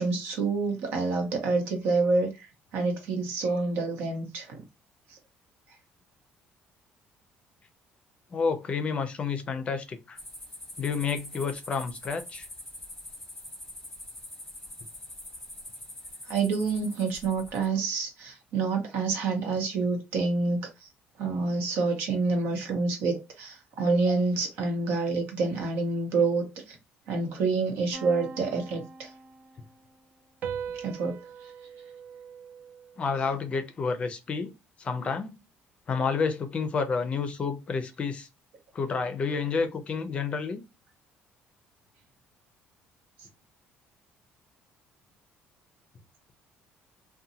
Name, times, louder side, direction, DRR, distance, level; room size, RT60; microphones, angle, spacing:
voice 1, 0.0-4.6 5.1-5.2 16.3-20.9 21.2-26.7 27.1-29.1 30.8-31.2, right 3 dB, 75° right, 0.9 m, -28 dB
voice 2, 8.3-10.2 10.8-12.5 33.0-34.5 34.8-35.4 35.9-38.3 38.7-40.6, left 5 dB, 30° left, 0.5 m, -30 dB
sound 1, 10.2-17.7, left 1 dB, 10° left, 1.0 m, -44 dB
sound 2, 27.9-29.7 30.4-33.1, right 6 dB, 60° right, 0.5 m, -41 dB
2.7 x 2.2 x 2.7 m
cardioid pair, 140°, 4 cm